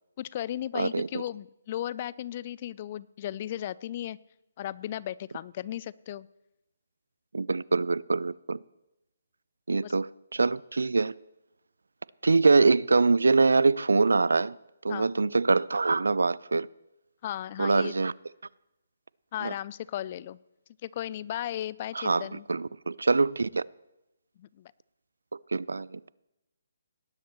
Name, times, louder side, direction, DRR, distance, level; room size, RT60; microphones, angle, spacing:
voice 1, 0.2-4.2 4.6-6.3 9.7-9.9 14.9-15.1 17.2-17.9 19.3-20.4 20.8-22.5 24.4-24.7, left 12 dB, 35° left, 0.3 m, -35 dB
voice 2, 0.7-1.2 7.3-8.6 9.7-11.1 12.2-14.6 14.8-16.7 17.6-18.1 19.4-19.5 21.9-23.6 25.5-26.0, right 3 dB, 85° right, 0.3 m, -24 dB
18.5 x 10.5 x 3.0 m
hypercardioid pair, 150°, 0 cm